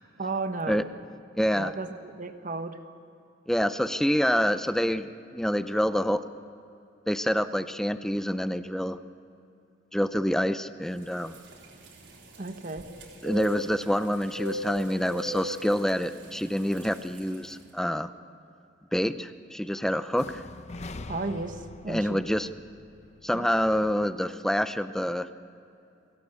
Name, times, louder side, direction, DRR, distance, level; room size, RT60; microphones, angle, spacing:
voice 1, 0.2-0.9 1.5-2.8 12.4-12.9 21.1-22.2 23.3-23.5, right 3 dB, 45° right, 8 dB, 1.3 m, -34 dB
voice 2, 1.3-1.7 3.5-6.2 7.1-9.0 9.9-11.4 13.2-18.1 18.9-20.4 21.9-22.5 23.2-25.3, equal, 5° left, 11 dB, 0.6 m, -27 dB
sound 1, 11.0-17.6, right 1 dB, 85° right, 3.7 m, -40 dB
sound 2, 20.2-24.1, left 2 dB, 40° left, 0.7 m, -43 dB
23.0 x 16.5 x 8.2 m, 2.7 s
head